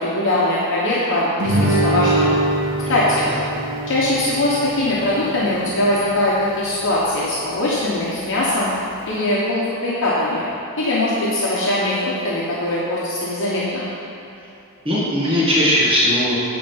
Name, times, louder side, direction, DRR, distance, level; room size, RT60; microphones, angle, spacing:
voice 1, 0.0-2.3 2.9-3.2 3.9-8.7 9.1-10.4 10.8-13.8, left 1 dB, 60° left, -7 dB, 1.2 m, -21 dB
Guitar, 1.4-6.5, right 1 dB, 70° right, 2.0 m, -23 dB
voice 2, 14.8-16.3, equal, 25° right, -8 dB, 1.8 m, -18 dB
9.3 x 3.9 x 7.2 m, 2.8 s
head